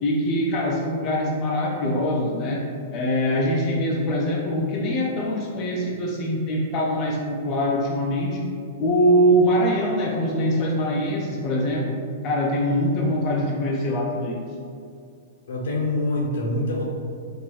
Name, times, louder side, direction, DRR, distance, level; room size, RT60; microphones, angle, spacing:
voice 1, 0.0-2.6 2.9-8.5 8.8-12.0 12.2-14.4, equal, 30° left, -2 dB, 0.4 m, -23 dB
voice 2, 15.5-16.8, left 1 dB, 80° left, -1 dB, 0.8 m, -25 dB
4.3 x 2.5 x 3.1 m, 2.4 s
hypercardioid pair, 160°, 0 cm